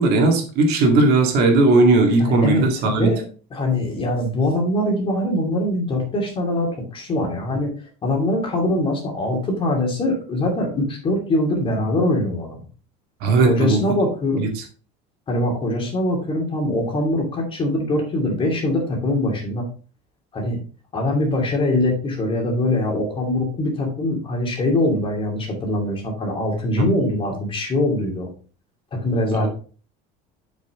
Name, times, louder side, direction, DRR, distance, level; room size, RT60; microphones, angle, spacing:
voice 1, 0.0-3.1 13.2-13.8 14.4-14.6 26.8-26.9 29.4-29.5, right 3 dB, 60° right, 2 dB, 2.4 m, -17 dB
voice 2, 2.2-3.2 3.5-7.7 8.0-12.6 13.4-14.4 15.3-19.7 20.3-20.6 20.9-28.3 29.0-29.5, left 1 dB, 30° left, 1 dB, 2.8 m, -22 dB
7.4 x 6.3 x 3.7 m, 0.39 s
cardioid pair, 145°, 19 cm